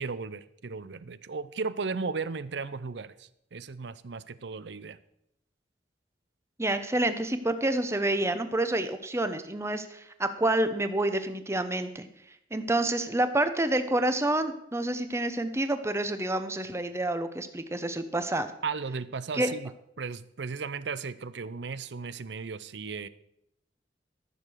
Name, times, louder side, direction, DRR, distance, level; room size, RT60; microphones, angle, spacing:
voice 1, 0.0-5.0 18.6-19.7 20.0-23.1, right 4 dB, 70° right, 15 dB, 0.6 m, -35 dB
voice 2, 6.6-12.1 12.5-18.5 19.3-19.5, right 1 dB, 15° right, 10 dB, 0.9 m, -28 dB
13.5 x 6.8 x 6.3 m, 0.77 s
head